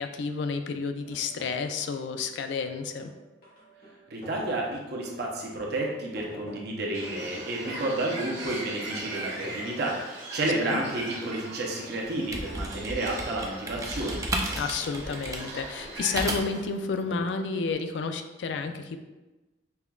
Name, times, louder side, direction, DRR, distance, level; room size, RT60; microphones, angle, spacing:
voice 1, 0.0-3.1 10.6-10.8 14.6-19.0, left 4 dB, 75° left, 8 dB, 0.3 m, -31 dB
sound 1, 1.0-17.7, equal, 55° left, 1.3 m, -48 dB
voice 2, 4.1-14.2, right 2 dB, 60° right, -1 dB, 0.7 m, -31 dB
Bird, 6.9-16.5, right 2 dB, 80° right, 1.1 m, -40 dB
sound 2, 12.2-16.7, right 1 dB, 20° right, 0.4 m, -33 dB
5.5 x 2.4 x 2.3 m, 1.1 s
head